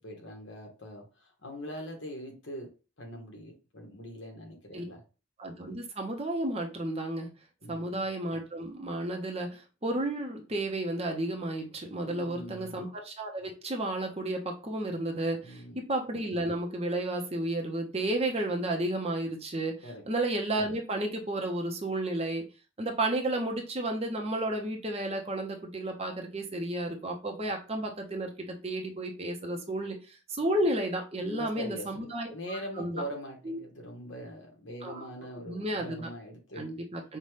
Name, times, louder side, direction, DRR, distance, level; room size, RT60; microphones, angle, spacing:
voice 1, 0.0-2.7 3.0-5.0 7.6-7.9 12.0-12.8 15.4-15.8 19.8-20.0 31.2-36.6, equal, 65° left, 1.5 m, -42 dB
voice 2, 5.4-7.3 7.7-19.7 20.1-22.4 22.8-33.0 33.5-33.6 34.8-35.0 35.5-36.1 36.6-37.2, right 1 dB, 30° right, 0.7 m, -32 dB
5.5 x 2.4 x 3.3 m
head